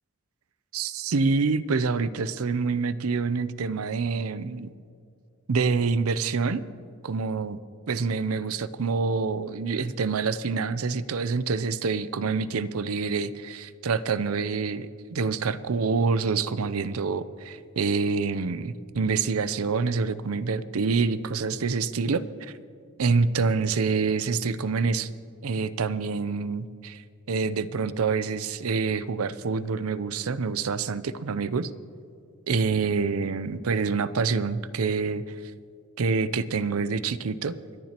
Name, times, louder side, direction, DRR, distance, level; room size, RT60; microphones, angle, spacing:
voice 1, 0.7-4.7 5.5-6.6 7.0-7.6 7.9-22.5 23.0-25.1 25.4-27.0 27.3-31.7 32.5-35.4 36.0-37.6, right 4 dB, 85° right, 15 dB, 0.6 m, -26 dB
29.0 x 10.5 x 3.0 m, 2.3 s
head